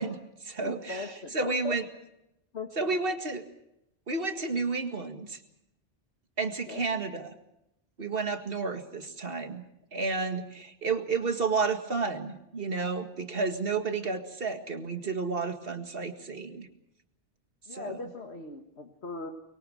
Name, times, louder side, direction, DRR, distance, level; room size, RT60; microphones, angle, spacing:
voice 1, 0.0-1.1 1.3-1.8 2.8-3.4 4.1-5.4 6.4-7.3 8.0-9.6 9.9-16.7 17.7-18.0, right 4 dB, 55° right, 6 dB, 2.1 m, -31 dB
voice 2, 0.6-1.8 2.5-3.0 6.6-6.8 17.7-19.3, left 3 dB, 70° left, 3 dB, 2.1 m, -39 dB
23.5 x 23.0 x 6.4 m, 0.84 s
omnidirectional pair, 1.1 m